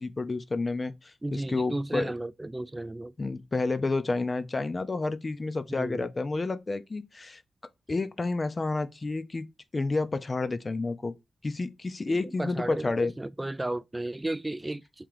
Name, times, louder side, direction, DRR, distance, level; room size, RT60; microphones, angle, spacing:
voice 1, 0.0-2.1 3.2-7.4 7.9-9.5 9.7-11.1 11.4-13.1, left 3 dB, 35° left, 0.5 m, -30 dB
voice 2, 1.2-3.4 5.7-6.1 12.1-15.1, right 1 dB, 20° right, 0.3 m, -34 dB
3.7 x 2.9 x 4.7 m
cardioid pair, 80°, 0 cm